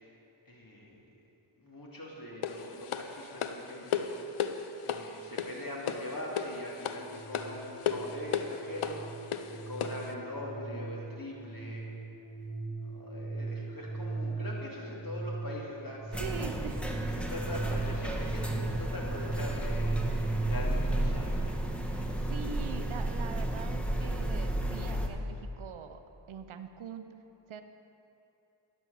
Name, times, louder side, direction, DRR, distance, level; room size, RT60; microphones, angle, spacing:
voice 1, 0.5-1.0 1.6-4.5 4.8-11.9 12.8-16.5 17.2-21.4, left 1 dB, 45° left, -3 dB, 2.6 m, -42 dB
sound 1, 2.4-10.1, left 8 dB, 85° left, 0.7 m, -35 dB
sound 2, 6.8-20.5, right 3 dB, 25° right, 1.5 m, -38 dB
sound 3, 16.1-25.1, right 1 dB, ahead, 1.1 m, -32 dB
voice 2, 16.2-16.9 21.8-26.0 26.3-27.0 27.5-27.6, right 7 dB, 75° right, 8 dB, 0.7 m, -43 dB
11.0 x 6.2 x 7.0 m, 2.9 s
cardioid pair, 50°, 49 cm